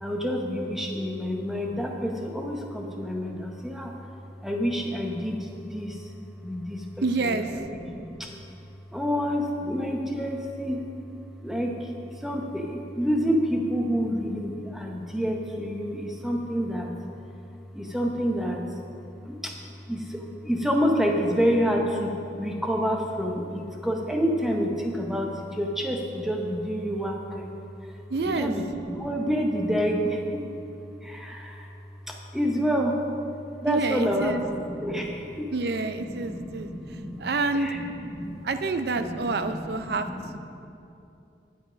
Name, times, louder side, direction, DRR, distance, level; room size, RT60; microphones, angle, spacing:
voice 1, 0.0-3.9 4.4-6.0 6.4-8.3 8.9-10.8 11.4-11.8 12.2-16.9 17.7-18.6 19.2-19.6 19.9-22.1 22.4-27.5 28.2-30.4 31.0-31.7 32.1-33.0 33.6-35.5 36.0-37.3 37.5-38.4 39.0-40.4, equal, ahead, 0 dB, 0.8 m, -28 dB
voice 2, 7.0-7.5 28.1-28.5 33.7-34.5 35.5-36.7 37.2-37.7 38.4-40.1, right 3 dB, 60° right, 9 dB, 0.5 m, -27 dB
10.0 x 7.9 x 5.1 m, 2.7 s
head